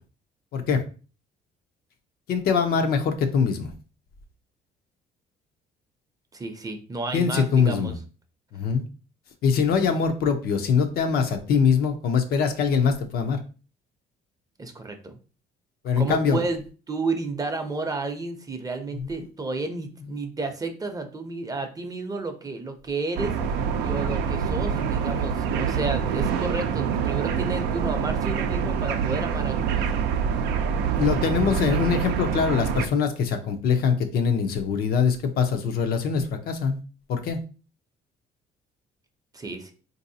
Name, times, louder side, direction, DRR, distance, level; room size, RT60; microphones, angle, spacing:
voice 1, 2.3-3.7 7.1-7.9 8.5-8.8 9.4-13.4 15.8-16.4 19.0-19.3 31.0-36.8 37.1-37.4, left 6 dB, 65° left, 6 dB, 0.6 m, -23 dB
voice 2, 6.3-7.9 14.6-15.2 16.0-16.6 16.9-23.3 23.8-29.9 39.3-39.7, right 3 dB, 20° right, 6 dB, 0.6 m, -31 dB
sound 1, 23.2-32.9, right 7 dB, 85° right, 0.4 m, -26 dB
3.8 x 2.7 x 2.6 m, 0.36 s
cardioid pair, 110°, 17 cm